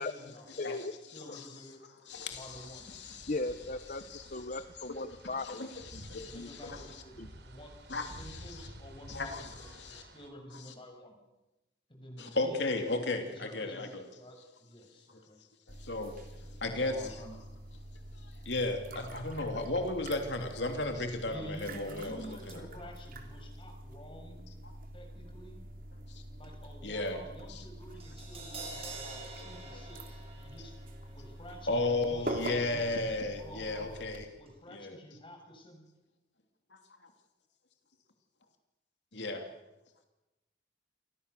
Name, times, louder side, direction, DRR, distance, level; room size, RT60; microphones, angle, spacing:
voice 1, 0.0-0.4 1.1-1.8 2.3-2.9 6.2-7.8 8.2-11.2 11.9-12.7 13.3-15.4 16.3-17.4 21.3-24.5 24.9-25.6 26.4-30.8 31.1-33.0 33.4-34.0 34.4-35.9, equal, 30° left, 4 dB, 6.6 m, -50 dB
voice 2, 0.6-0.9 3.3-6.5 7.2-7.3, left 2 dB, 45° left, 11 dB, 1.0 m, -38 dB
voice 3, 2.1-3.3 4.1-4.3 5.4-7.0 7.9-8.7 9.1-10.0 12.2-14.1 15.7-16.1 16.6-16.9 18.4-22.7 24.6-24.7 26.1-26.2 26.8-27.2 27.5-27.6 29.7-29.8 31.7-34.3 34.7-35.0 36.7-36.8 39.1-39.4, left 2 dB, 75° left, 5 dB, 2.9 m, -35 dB
sound 1, 2.1-10.3, right 1 dB, 70° right, 4.4 m, -52 dB
sound 2, 15.7-34.2, right 1 dB, 50° right, 3.5 m, -45 dB
Crash cymbal, 28.0-34.2 34.4-34.6, right 3 dB, 35° right, 7.4 m, -49 dB
29.5 x 25.5 x 6.9 m, 1.0 s
head